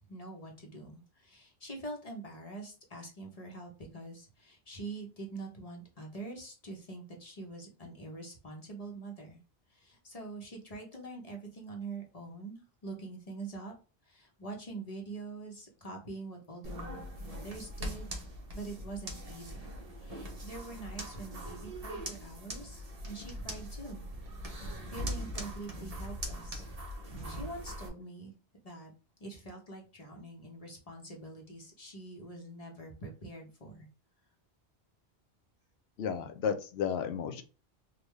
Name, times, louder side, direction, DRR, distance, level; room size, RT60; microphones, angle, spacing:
voice 1, 0.1-9.4 9.7-13.7 14.0-18.1 18.5-19.7 20.0-24.1 24.4-24.6 24.9-26.6 27.2-28.3 28.6-28.9 29.2-33.9, right 3 dB, 40° left, 0 dB, 0.9 m, -45 dB
sound 1, 16.6-27.9, equal, 40° right, 0.8 m, -41 dB
voice 2, 36.0-37.4, left 7 dB, 75° left, 7 dB, 0.8 m, -33 dB
3.6 x 2.3 x 3.1 m, 0.33 s
omnidirectional pair, 1.1 m